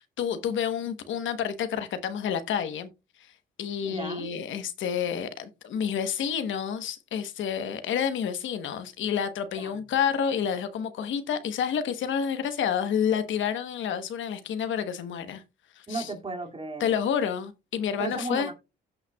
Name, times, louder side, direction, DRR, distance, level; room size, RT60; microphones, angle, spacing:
voice 1, 0.2-2.9 3.6-15.4 15.8-16.1 16.8-18.5, left 8 dB, 75° left, 1.1 m, -29 dB
voice 2, 3.8-4.3 9.6-9.7 15.9-16.8 18.0-18.5, right 3 dB, 30° right, 2.4 m, -34 dB
16.0 x 5.6 x 2.3 m
cardioid pair, 90°, 20 cm